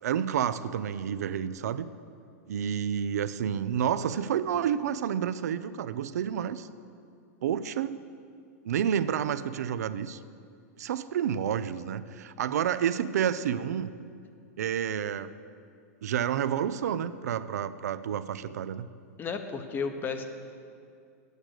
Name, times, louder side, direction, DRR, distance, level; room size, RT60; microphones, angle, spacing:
voice 1, 0.0-1.9 2.5-6.7 7.4-8.0 8.6-10.2 10.8-13.9 14.6-15.3 16.0-18.9, right 9 dB, 80° right, 14 dB, 0.5 m, -29 dB
voice 2, 19.2-20.2, left 5 dB, 25° left, 7 dB, 0.9 m, -33 dB
8.8 x 8.1 x 6.5 m, 2.4 s
hypercardioid pair, 120°, 9 cm